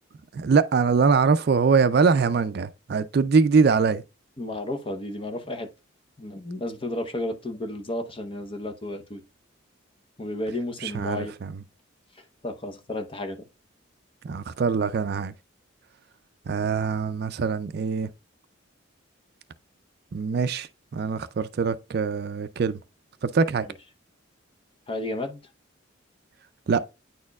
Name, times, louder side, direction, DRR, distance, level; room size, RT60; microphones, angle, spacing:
voice 1, 0.3-4.0 10.8-11.5 14.2-15.3 16.5-18.1 20.1-22.8 23.2-23.7 26.7-26.9, right 5 dB, 50° right, 0.4 m, -23 dB
voice 2, 4.4-5.7 6.2-9.2 10.2-11.3 12.1-13.4 24.9-25.4, left 1 dB, 25° left, 0.8 m, -32 dB
9.4 x 4.3 x 2.3 m
head